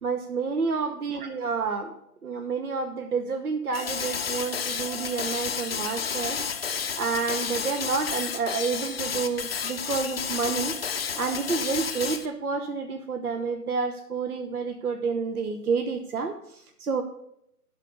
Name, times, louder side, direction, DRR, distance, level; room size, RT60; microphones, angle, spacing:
voice 1, 0.0-1.9 2.2-6.4 6.7-10.8 11.2-17.0, right 5 dB, 70° right, 7 dB, 1.0 m, -29 dB
sound 1, 3.7-12.3, left 7 dB, 40° left, 0.6 m, -31 dB
11.5 x 4.0 x 6.7 m, 0.77 s
figure-of-eight pair, 145°, 46 cm